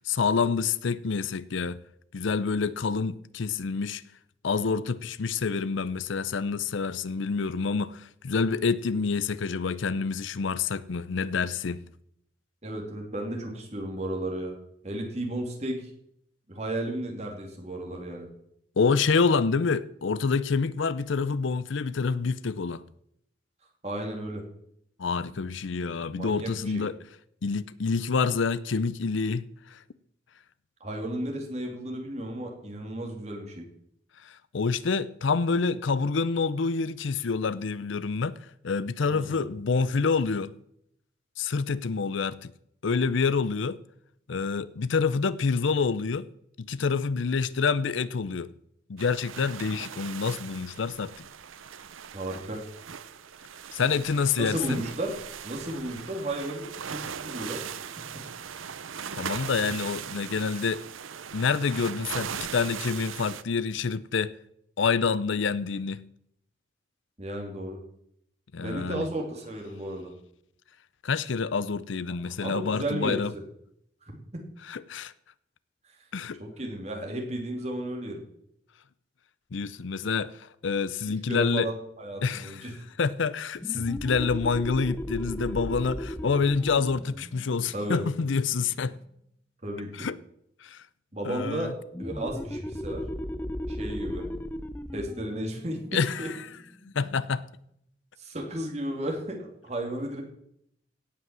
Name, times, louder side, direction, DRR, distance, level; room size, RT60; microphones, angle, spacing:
voice 1, 0.0-1.8 2.1-4.0 4.4-11.8 18.8-22.8 25.0-27.0 27.4-29.8 34.2-38.4 38.6-40.5 41.4-42.5 42.8-43.8 44.3-46.3 46.6-48.5 48.9-51.1 53.7-54.8 59.1-60.8 61.3-64.3 64.8-66.0 68.5-69.1 71.0-73.3 74.7-75.1 76.1-76.4 79.5-81.7 82.2-82.7 83.0-89.0 90.0-90.2 90.6-90.8 91.2-91.7 95.9-96.3 96.8-97.4, left 5 dB, 70° left, 0.5 m, -27 dB
voice 2, 12.6-14.5 14.8-15.9 16.5-18.3 23.8-24.4 26.1-26.8 30.8-33.6 39.1-39.5 52.1-52.6 54.4-55.1 55.4-58.2 67.2-67.8 68.6-70.1 72.4-73.4 74.0-74.2 76.4-78.2 81.3-82.7 87.7-88.0 89.6-90.1 91.1-91.7 92.0-93.0 93.7-94.3 94.9-95.8 96.2-96.3 98.2-100.2, right 1 dB, 35° right, 2.7 m, -34 dB
sound 1, 49.0-63.4, right 7 dB, 85° right, 0.7 m, -39 dB
sound 2, 83.6-88.9 91.9-97.2, equal, 10° left, 0.5 m, -37 dB
17.0 x 5.8 x 7.4 m
head